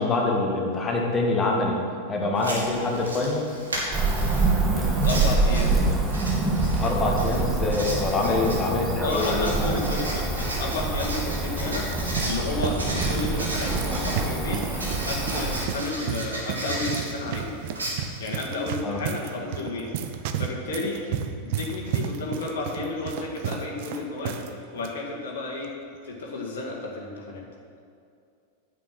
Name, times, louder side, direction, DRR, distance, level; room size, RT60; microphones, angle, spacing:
voice 1, 0.0-1.8 2.1-3.5 6.8-9.5 18.8-19.0, left 3 dB, 20° left, -1 dB, 1.9 m, -25 dB
Writing, 2.3-18.7, right 1 dB, 75° right, 2.3 m, -36 dB
Cricket / Motor vehicle (road), 3.9-15.7, right 3 dB, 15° right, 1.5 m, -26 dB
voice 2, 4.7-5.8 8.2-8.5 9.0-11.9 12.2-14.7 15.1-17.6 18.2-19.9 20.4-24.4 24.7-25.8 26.0-27.5, left 2 dB, 60° left, -1 dB, 1.9 m, -32 dB
sound 1, 11.7-24.5 24.8-24.9 25.6-25.9, right 8 dB, 50° right, 0.7 m, -33 dB
9.3 x 8.1 x 6.1 m, 2.4 s
figure-of-eight pair, 90°, 0 cm